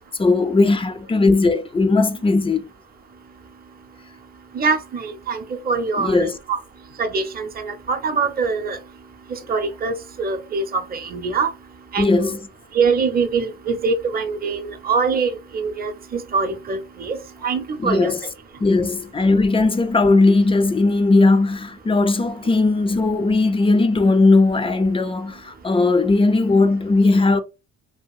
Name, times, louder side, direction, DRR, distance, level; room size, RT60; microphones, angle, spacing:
voice 1, 0.2-2.7 6.0-6.3 12.0-12.4 17.8-18.2 18.6-27.4, left 3 dB, 20° left, 0.4 m, -18 dB
voice 2, 4.5-6.6 7.0-8.8 9.5-9.9 10.2-11.5 11.9-12.4 12.7-17.2 17.4-18.1, right 4 dB, 30° right, 0.6 m, -23 dB
2.8 x 2.8 x 2.3 m
cardioid pair, 90°, 30 cm